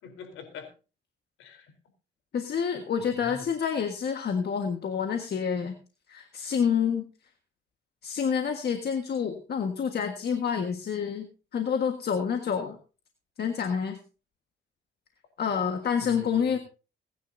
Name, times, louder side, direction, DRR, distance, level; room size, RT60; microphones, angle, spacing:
voice 1, 0.0-0.7 1.4-1.7 3.2-3.5 16.0-16.6, left 6 dB, 90° left, 5 dB, 3.9 m, -44 dB
voice 2, 2.3-5.7 6.1-7.0 8.0-11.3 11.5-12.8 13.4-14.0 15.4-16.6, left 7 dB, 55° left, 5 dB, 1.6 m, -28 dB
23.0 x 10.5 x 2.7 m, 0.34 s
cardioid pair, 90°, 20 cm